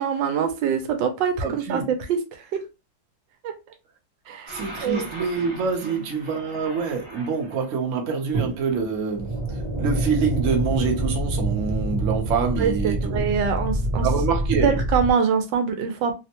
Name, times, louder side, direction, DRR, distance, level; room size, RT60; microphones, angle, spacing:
voice 1, 0.0-1.8 2.1-2.7 3.4-3.5 4.3-5.1 12.6-14.1 14.6-16.2, right 6 dB, 80° right, 1.3 m, -24 dB
voice 2, 1.4-1.8 4.5-9.4 9.8-13.2 14.0-14.7, right 5 dB, 60° right, 0.9 m, -26 dB
sound 1, 4.5-7.6 8.3-15.1, right 1 dB, 20° right, 0.8 m, -27 dB
3.4 x 2.1 x 2.8 m
omnidirectional pair, 2.0 m